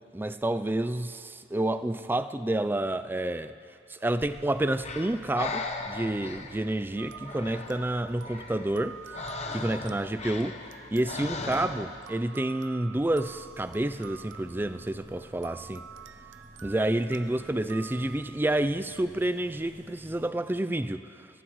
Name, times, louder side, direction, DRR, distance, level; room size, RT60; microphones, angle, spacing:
voice 1, 0.1-3.5 3.9-9.0 9.5-10.6 10.9-15.8 16.6-21.3, right 1 dB, 10° right, 11 dB, 0.4 m, -29 dB
Breathing, 4.2-12.1, left 3 dB, 35° left, 0.9 m, -39 dB
sound 1, 7.0-18.7, right 7 dB, 80° right, 0.6 m, -48 dB
sound 2, 12.9-20.3, equal, 55° right, 3.0 m, -53 dB
26.5 x 16.0 x 3.1 m, 2.3 s
head